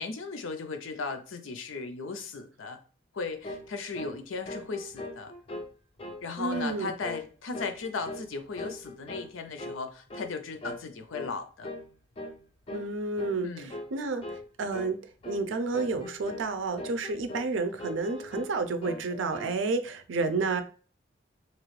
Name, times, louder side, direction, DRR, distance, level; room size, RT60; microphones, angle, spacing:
voice 1, 0.0-2.8 3.1-5.3 6.2-11.7 13.4-13.7, left 4 dB, 90° left, 7 dB, 0.5 m, -37 dB
sound 1, 3.4-3.7 3.9-4.2 4.5-5.7 6.0-6.2 6.5-6.8 7.0-7.3 7.5-8.3 8.6-9.3 9.6-9.8 10.1-10.3 10.6-10.8 11.1-11.3 11.6-11.9 12.2-12.4 12.7-12.9 13.2-13.4 13.7-13.9 14.2-14.5 14.7-14.9 15.2-15.4 15.7-16.5 16.8-17.5 17.8-18.5 18.8-19.6, left 1 dB, 30° left, 0.4 m, -40 dB
voice 2, 6.4-6.9 12.7-14.2 14.6-15.0 15.3-20.6, right 3 dB, 80° right, 9 dB, 0.4 m, -30 dB
3.0 x 2.4 x 3.1 m, 0.39 s
head